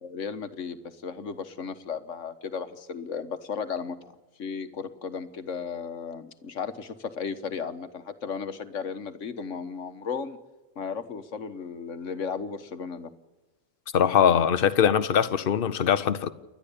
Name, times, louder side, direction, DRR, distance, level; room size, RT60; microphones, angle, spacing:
voice 1, 0.0-10.4 10.7-13.1, left 6 dB, 65° left, 1.6 m, -35 dB
voice 2, 13.9-16.3, left 8 dB, 45° left, 1.0 m, -22 dB
28.5 x 12.0 x 8.7 m
omnidirectional pair, 1.4 m